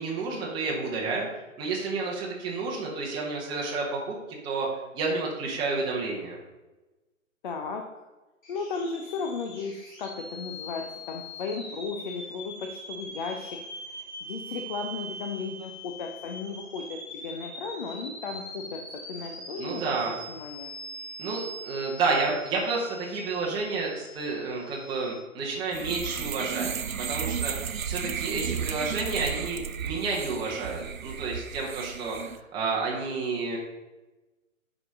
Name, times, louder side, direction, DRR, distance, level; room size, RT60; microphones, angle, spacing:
voice 1, 0.0-4.2 4.4-4.7 4.9-6.4 19.6-20.2 21.2-26.7 27.0-33.6, right 4 dB, 10° right, -3 dB, 1.0 m, -30 dB
voice 2, 7.4-8.0 8.5-13.6 13.9-18.8 19.1-20.7, left 4 dB, 40° left, 3 dB, 0.8 m, -35 dB
sound 1, 8.4-25.2, equal, 20° left, 2.4 m, -42 dB
sound 2, 25.7-32.4, right 7 dB, 85° right, 0.6 m, -33 dB
9.3 x 5.1 x 3.6 m, 1.1 s
figure-of-eight pair, 125°, 40 cm